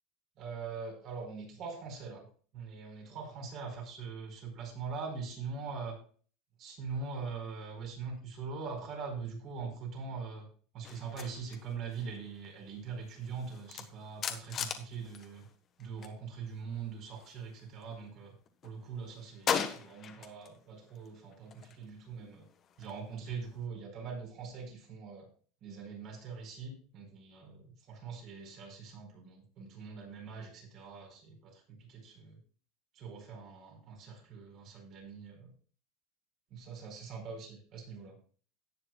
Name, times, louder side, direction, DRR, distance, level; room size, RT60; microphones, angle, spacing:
voice 1, 0.4-2.3 2.5-6.0 6.6-10.5 10.7-15.5 15.8-18.3 18.6-22.5 22.8-25.3 25.6-32.4 32.9-35.5 36.5-38.2, right 5 dB, 45° right, 1 dB, 4.8 m, -42 dB
sound 1, 10.8-16.2 16.4-18.1 18.5-20.6 20.9-23.7, left 7 dB, 35° left, 1.3 m, -41 dB
17.5 x 6.8 x 2.3 m, 0.43 s
supercardioid pair, 140°, 0 cm